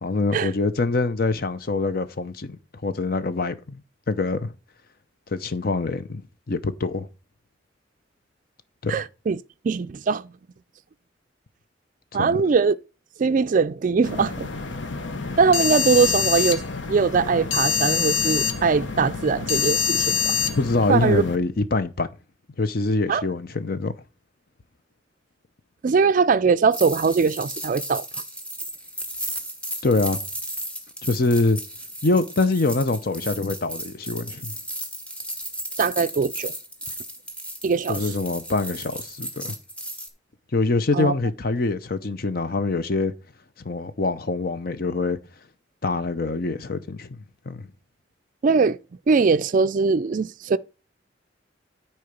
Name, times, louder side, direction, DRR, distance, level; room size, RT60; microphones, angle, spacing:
voice 1, 0.0-2.6 2.8-3.8 4.1-4.5 5.3-6.2 6.5-7.1 8.8-9.1 12.1-12.4 20.6-22.1 22.6-23.9 29.8-30.2 31.0-31.6 32.0-34.5 37.9-39.6 40.5-43.1 43.6-45.2 45.8-47.2 47.5-47.7, left 3 dB, 50° left, 0.7 m, -24 dB
voice 2, 8.9-9.4 9.6-10.3 12.1-12.8 13.2-14.5 15.4-16.6 16.9-20.3 20.9-21.2 23.1-23.2 25.8-28.0 35.8-36.5 37.6-38.1 40.9-41.1 48.4-48.8 49.1-50.6, right 5 dB, 45° right, 0.4 m, -21 dB
sound 1, 14.0-21.4, left 6 dB, 80° left, 1.0 m, -26 dB
sound 2, 26.7-40.1, right 1 dB, 5° left, 1.2 m, -35 dB
9.7 x 4.5 x 5.1 m
head